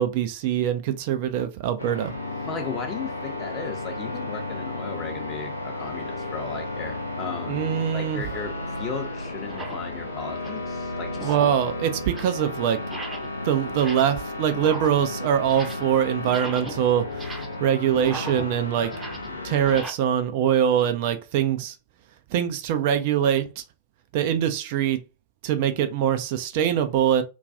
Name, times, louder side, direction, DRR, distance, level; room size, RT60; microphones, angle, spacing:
voice 1, 0.0-2.1 7.5-8.2 11.2-12.8 13.4-17.3 17.6-18.9 19.4-21.8 22.3-23.6 24.1-25.0 25.4-27.2, right 9 dB, 50° right, 0.3 m, -23 dB
sound 1, 1.8-19.8, left 2 dB, 80° left, 0.4 m, -33 dB
voice 2, 2.4-7.6 7.9-11.3 18.8-18.9, left 5 dB, 30° left, 0.6 m, -36 dB
sound 2, 5.5-14.3, right 2 dB, 80° right, 0.7 m, -44 dB
sound 3, 7.9-8.0 8.7-8.8 9.4-9.9 10.2-10.7 11.1-11.7 12.0-12.4 12.8-13.4 13.7-14.2 14.5-15.9 16.2-19.9, right 2 dB, 10° right, 0.6 m, -39 dB
2.3 x 2.2 x 2.6 m
figure-of-eight pair, 90°, 0 cm